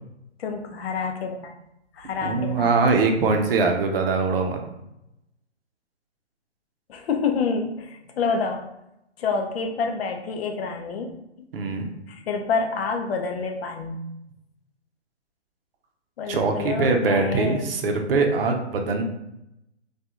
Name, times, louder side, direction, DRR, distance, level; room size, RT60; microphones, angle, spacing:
voice 1, 0.4-1.5 2.0-2.9 6.9-8.7 9.2-11.1 12.1-14.0 16.2-17.7, left 4 dB, 60° left, 3 dB, 0.5 m, -28 dB
voice 2, 2.2-4.6 11.5-11.9 16.3-19.0, right 4 dB, 55° right, 4 dB, 0.6 m, -22 dB
2.3 x 2.3 x 2.9 m, 0.84 s
hypercardioid pair, 145°, 35 cm